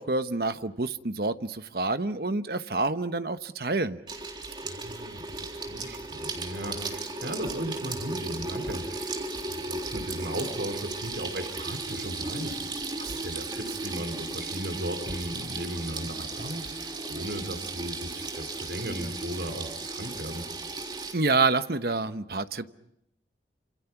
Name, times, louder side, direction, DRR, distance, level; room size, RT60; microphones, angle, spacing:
voice 1, 0.0-4.0 21.1-22.7, right 3 dB, 60° right, 10 dB, 1.1 m, -27 dB
Water tap faucet / Sink (filling or washing), 4.1-21.1, right 3 dB, 25° right, 3.5 m, -35 dB
voice 2, 4.6-12.6 13.0-20.5, right 1 dB, 75° right, 6 dB, 3.7 m, -36 dB
28.5 x 27.0 x 6.0 m, 0.82 s
head